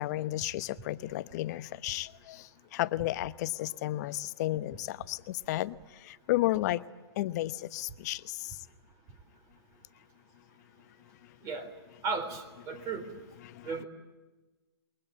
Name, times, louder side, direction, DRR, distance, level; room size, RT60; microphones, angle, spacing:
voice 1, 0.0-2.1 2.7-5.2 5.5-5.7 6.3-6.8 7.2-8.2, left 16 dB, 40° left, 14 dB, 1.0 m, -32 dB
voice 2, 12.0-13.1 13.6-13.8, right 4 dB, 25° right, 10 dB, 3.8 m, -35 dB
28.0 x 22.5 x 8.7 m, 1.2 s
hypercardioid pair, 135°, 14 cm